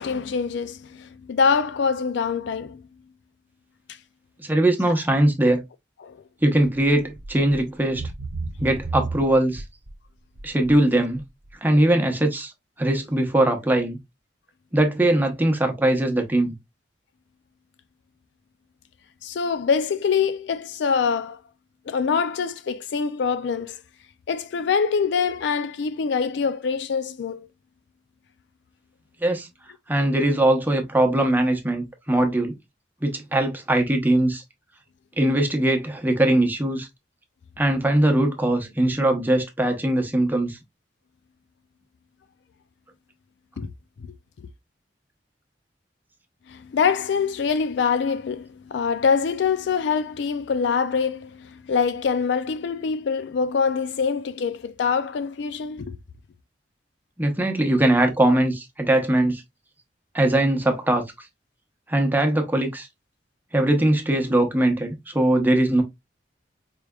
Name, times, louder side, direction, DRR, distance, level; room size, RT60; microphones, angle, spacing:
voice 1, 0.0-2.8 6.0-6.2 19.2-21.4 21.9-23.8 24.3-27.5 43.6-43.7 44.0-44.5 46.5-56.0, left 6 dB, 70° left, 0.4 m, -24 dB
voice 2, 4.4-5.6 6.4-8.0 8.6-9.6 10.4-11.2 11.6-12.5 12.8-14.0 14.7-16.5 29.2-29.5 29.9-32.6 33.0-34.4 35.2-36.9 37.6-40.6 57.2-59.4 60.1-61.0 61.9-62.9 63.5-65.8, right 1 dB, 10° right, 0.9 m, -21 dB
sound 1, 7.2-7.6 7.9-9.9 10.4-10.7 11.2-11.3, right 3 dB, 65° right, 0.9 m, -32 dB
4.6 x 3.3 x 2.3 m
head